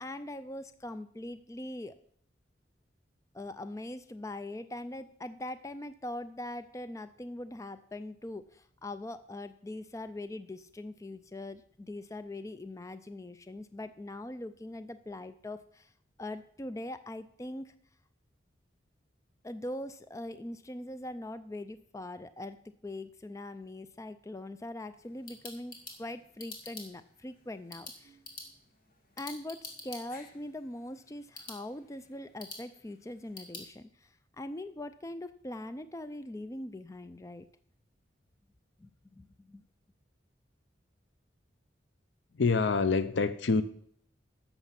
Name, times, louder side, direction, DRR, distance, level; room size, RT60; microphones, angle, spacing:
voice 1, 0.0-2.0 3.3-15.9 16.2-17.7 19.4-28.2 29.2-37.5 38.8-39.6, left 1 dB, 15° left, 12 dB, 0.4 m, -42 dB
sound 1, 24.9-33.7, left 2 dB, 50° left, 2.1 m, -49 dB
voice 2, 42.3-43.6, left 4 dB, 70° left, 13 dB, 0.6 m, -26 dB
11.0 x 7.1 x 5.8 m, 0.64 s
head